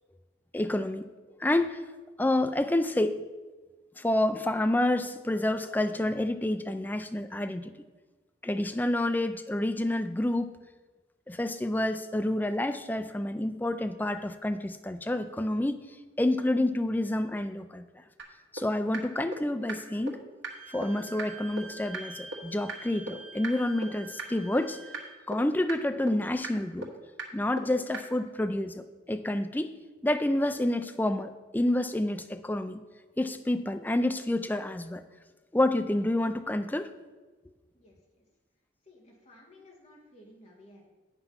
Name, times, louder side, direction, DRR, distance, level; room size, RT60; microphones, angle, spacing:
voice 1, 0.5-1.0 1.4-1.8 2.2-3.2 4.0-7.7 8.4-10.6 11.3-15.8 16.2-17.9 18.5-20.2 20.7-24.8 25.3-26.9 27.3-29.7 30.0-32.8 33.2-35.0 35.5-36.9, left 1 dB, 10° left, 8 dB, 0.3 m, -28 dB
sound 1, 18.2-18.3 18.6-18.7 18.9-19.0 19.3-19.4 19.7-19.8 20.1-20.2 20.4-20.5 20.8-20.9 21.2-21.3 21.6-21.7 21.9-22.0 22.3-22.4 22.7-22.8 23.1-23.2 23.4-23.5 23.8-23.9 24.2-24.3 24.6-24.7 24.9-25.0 25.3-25.4 25.7-25.8 26.1-26.2 26.4-26.5 26.8-26.9 27.2-27.3 27.6-27.7 27.9-28.0, right 4 dB, 80° right, 1.5 m, -35 dB
Wind instrument woodwind instrument, 20.5-25.2, right 4 dB, 35° right, 0.9 m, -47 dB
voice 2, 37.7-38.3 38.9-40.9, left 1 dB, 35° left, -3 dB, 2.0 m, -55 dB
8.7 x 5.9 x 5.7 m, 1.3 s
head